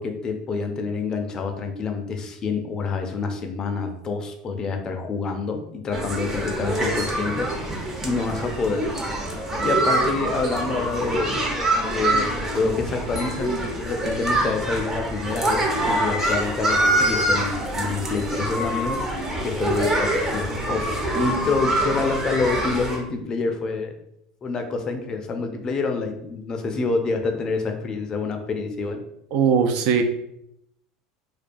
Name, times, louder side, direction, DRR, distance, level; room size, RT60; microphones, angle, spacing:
voice 1, 0.0-8.8 9.1-11.4 11.9-19.0 19.4-23.9 24.4-29.0, left 4 dB, 35° left, 5 dB, 0.4 m, -27 dB
sound 1, 5.9-23.0, right 1 dB, 20° right, 0.6 m, -25 dB
voice 2, 29.3-30.0, right 6 dB, 60° right, 7 dB, 0.3 m, -19 dB
2.2 x 2.2 x 2.5 m, 0.78 s
supercardioid pair, 100°, 2 cm